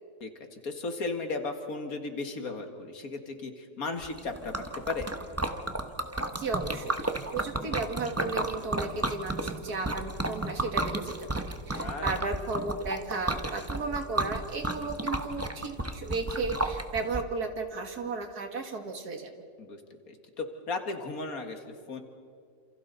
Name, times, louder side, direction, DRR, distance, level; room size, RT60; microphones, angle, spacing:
voice 1, 0.2-4.6 4.9-5.1 11.7-12.2 19.6-19.8 20.1-22.0, left 3 dB, 70° left, 5 dB, 2.2 m, -36 dB
Liquid, 4.0-17.2, right 2 dB, 15° right, 0.7 m, -33 dB
voice 2, 6.3-19.3, right 3 dB, 85° right, 5 dB, 2.4 m, -34 dB
29.0 x 27.5 x 4.1 m, 2.3 s
omnidirectional pair, 1.6 m